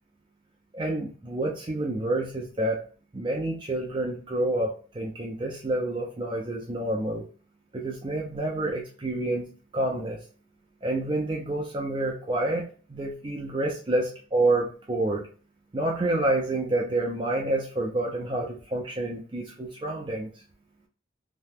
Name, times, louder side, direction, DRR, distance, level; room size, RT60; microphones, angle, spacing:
voice 1, 0.7-2.8 3.1-7.2 7.7-10.2 10.8-15.3 15.7-20.3, right 2 dB, 25° right, -1 dB, 0.4 m, -28 dB
2.7 x 2.1 x 3.4 m, 0.39 s
head